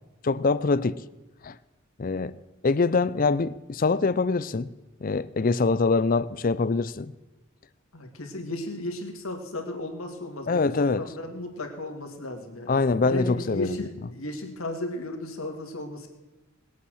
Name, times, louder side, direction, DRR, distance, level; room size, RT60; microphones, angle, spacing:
voice 1, 0.2-1.0 1.4-1.6 2.0-2.4 2.6-4.7 5.0-7.1 10.5-11.0 12.7-13.8, left 4 dB, 40° left, 0.5 m, -24 dB
voice 2, 7.9-12.7 13.0-16.1, left 1 dB, 75° left, 2.3 m, -34 dB
21.0 x 8.5 x 6.4 m
head